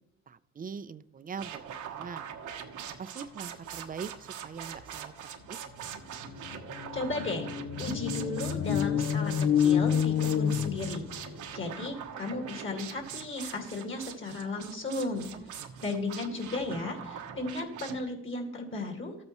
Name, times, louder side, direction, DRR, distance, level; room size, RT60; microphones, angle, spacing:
voice 1, 0.3-2.3 3.0-5.6 15.3-15.5, right 6 dB, 30° right, 15 dB, 0.5 m, -42 dB
sound 1, 1.4-18.0, right 8 dB, 80° right, 1.2 m, -43 dB
sound 2, 5.9-6.0 6.3-11.4, left 8 dB, 70° left, 0.7 m, -28 dB
voice 2, 6.9-7.5 7.8-11.1 11.5-19.2, left 2 dB, 40° left, 3 dB, 2.2 m, -35 dB
13.0 x 8.6 x 3.1 m, 0.80 s
cardioid pair, 90°, 30 cm